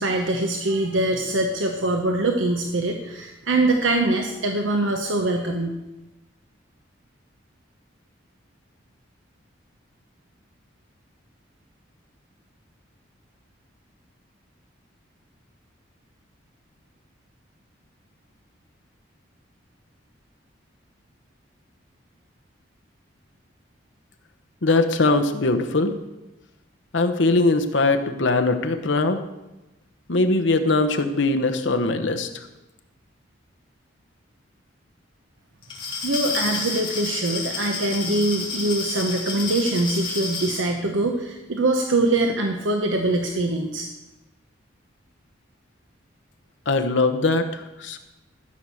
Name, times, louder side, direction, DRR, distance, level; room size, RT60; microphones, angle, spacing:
voice 1, 0.0-5.7 36.0-43.9, right 2 dB, 80° right, 3 dB, 1.0 m, -23 dB
voice 2, 24.6-25.9 26.9-29.2 30.1-32.3 46.7-48.0, left 3 dB, 75° left, 6 dB, 1.1 m, -21 dB
Glass, 35.6-40.7, left 4 dB, 25° left, 2.6 m, -30 dB
14.0 x 6.5 x 6.9 m, 1.0 s
head